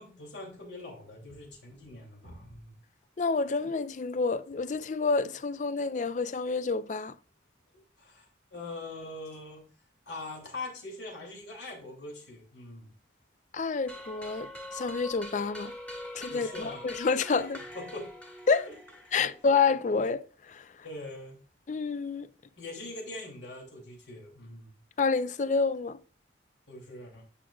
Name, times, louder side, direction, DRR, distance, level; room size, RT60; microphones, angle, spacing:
voice 1, 0.0-2.8 7.7-9.6 10.1-12.9 16.3-16.9 17.7-18.1 18.7-18.8 19.1-19.3 20.8-21.4 22.6-24.7 26.7-27.2, left 2 dB, 70° left, 2.7 m, -42 dB
voice 2, 3.2-7.2 13.5-15.7 16.1-17.6 18.5-18.7 19.1-20.7 21.7-22.3 25.0-26.0, left 4 dB, 40° left, 0.4 m, -28 dB
sound 1, 13.9-19.5, equal, 5° left, 1.2 m, -43 dB
10.0 x 6.0 x 2.3 m
head